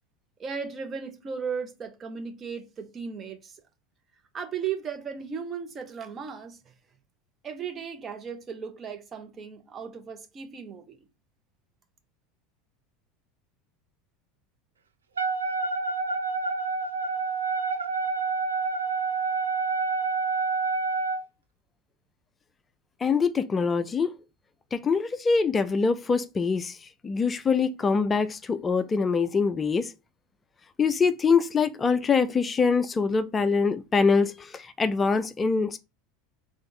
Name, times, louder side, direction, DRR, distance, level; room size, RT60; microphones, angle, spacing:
voice 1, 0.4-3.6 4.3-6.6 7.4-11.0, right 6 dB, 30° right, 0.9 m, -36 dB
Wind instrument woodwind instrument, 15.2-21.2, right 4 dB, 85° right, 0.4 m, -28 dB
voice 2, 23.0-24.1 24.7-26.8 27.0-29.9 30.8-35.8, left 5 dB, 25° left, 0.3 m, -24 dB
3.2 x 2.5 x 4.0 m
figure-of-eight pair, 80°, 0 cm